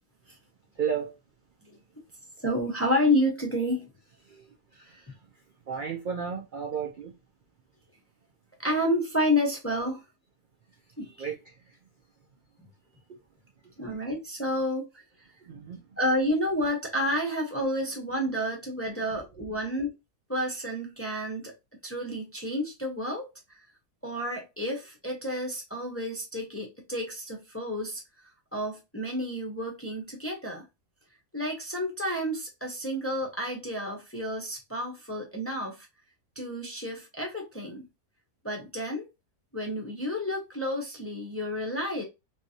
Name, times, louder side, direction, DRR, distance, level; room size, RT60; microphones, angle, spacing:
voice 1, 0.7-1.1 4.2-5.3 5.7-7.1 11.0-11.8 13.1-13.2 13.6-13.7 15.4-16.0 18.9-19.5, right 7 dB, 55° right, 0.5 m, -35 dB
voice 2, 2.4-3.9 8.6-10.0 11.0-11.1 13.8-15.0 16.0-19.9 20.3-21.5 21.8-23.6 24.0-28.0 28.5-30.6 31.3-35.9 36.4-37.8 38.4-39.1 39.5-42.0, left 1 dB, 15° left, 0.6 m, -30 dB
3.3 x 3.1 x 2.7 m
omnidirectional pair, 1.5 m